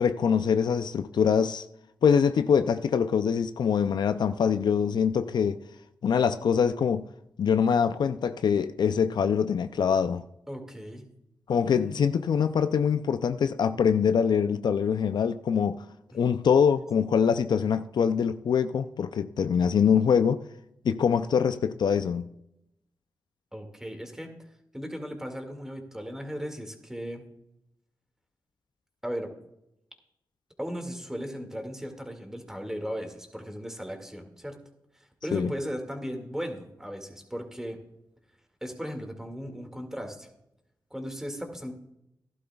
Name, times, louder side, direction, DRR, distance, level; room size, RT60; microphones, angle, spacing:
voice 1, 0.0-1.7 2.0-5.6 6.0-7.0 7.4-10.2 11.5-15.8 16.1-20.4 20.8-22.3 35.3-35.5, left 7 dB, 70° left, 0.4 m, -24 dB
voice 2, 10.5-11.1 11.7-11.9 23.5-24.3 24.7-27.2 29.0-29.3 30.6-34.6 34.9-37.8 38.6-40.3 40.9-41.7, equal, 5° right, 2.1 m, -36 dB
15.5 x 11.5 x 2.3 m
cardioid pair, 70°, 8 cm